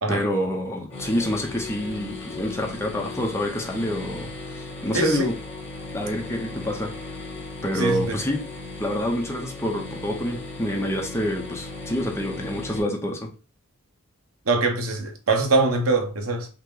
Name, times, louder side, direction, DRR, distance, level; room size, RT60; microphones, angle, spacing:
voice 1, 0.1-5.4 5.9-6.9 7.6-8.4 8.8-13.3, equal, 15° left, 0.8 m, -27 dB
sound 1, 0.9-12.8, left 2 dB, 30° left, 1.8 m, -37 dB
voice 2, 4.9-5.3 7.8-8.2 14.5-16.5, right 3 dB, 75° right, 1.0 m, -23 dB
5.6 x 2.2 x 3.8 m
head